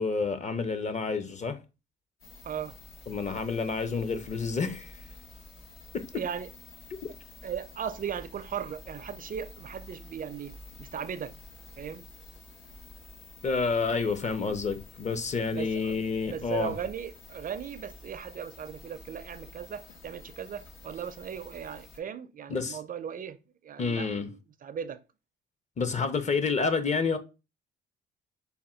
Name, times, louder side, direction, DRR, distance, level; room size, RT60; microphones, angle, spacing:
voice 1, 0.0-1.6 3.1-5.0 5.9-6.2 13.4-16.7 22.5-22.8 23.8-24.3 25.8-27.2, left 4 dB, 35° left, 0.6 m, -29 dB
sound 1, 2.2-22.0, left 2 dB, 85° left, 1.2 m, -50 dB
voice 2, 2.4-2.8 6.1-6.5 7.4-11.3 11.8-12.1 15.5-24.4 24.6-25.0, right 8 dB, 45° right, 0.4 m, -37 dB
3.5 x 2.2 x 4.2 m
cardioid pair, 90°, 20 cm